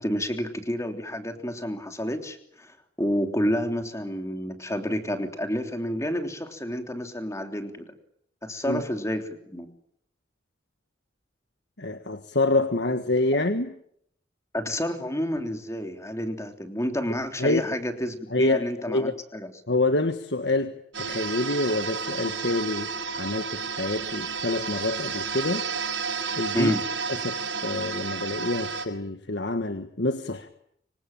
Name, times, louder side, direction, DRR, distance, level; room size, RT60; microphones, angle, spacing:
voice 1, 0.0-8.0 8.4-9.7 14.5-19.5 26.5-26.8, equal, 15° left, 6 dB, 3.3 m, -29 dB
voice 2, 11.8-13.7 17.4-17.6 18.3-19.1 19.7-25.7 26.3-26.7 27.2-30.5, left 2 dB, 65° left, 8 dB, 1.6 m, -27 dB
sound 1, 20.9-28.8, right 5 dB, 85° right, 6.5 m, -31 dB
26.0 x 25.0 x 9.1 m, 0.72 s
head